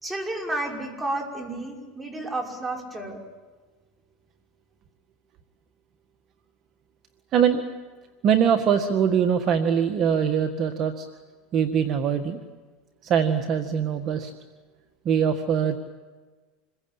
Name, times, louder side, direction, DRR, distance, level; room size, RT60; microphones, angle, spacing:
voice 1, 0.0-3.2, right 2 dB, 10° right, 2 dB, 5.5 m, -31 dB
voice 2, 7.3-7.6 8.2-11.1 11.5-12.4 13.0-14.3 15.1-15.8, right 7 dB, 40° right, 6 dB, 1.8 m, -22 dB
27.5 x 22.0 x 9.0 m, 1.3 s
supercardioid pair, 120°, 0 cm